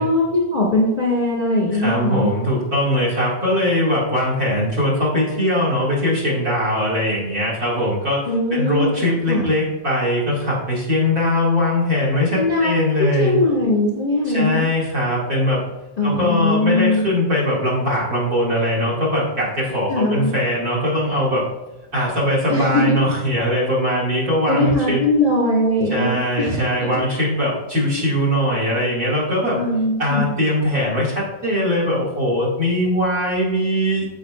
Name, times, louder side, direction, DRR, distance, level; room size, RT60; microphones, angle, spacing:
voice 1, 0.0-2.3 8.3-8.9 9.3-9.5 12.3-14.6 16.0-17.0 19.9-20.3 22.5-23.0 24.5-26.6 29.5-30.2, left 1 dB, 20° left, -5 dB, 1.6 m, -20 dB
voice 2, 1.7-8.2 8.5-13.4 14.2-15.6 16.0-21.5 21.9-25.0 25.9-29.6 30.0-34.1, left 1 dB, 30° right, -5 dB, 2.3 m, -21 dB
15.0 x 5.7 x 2.5 m, 1.0 s
omnidirectional pair, 3.7 m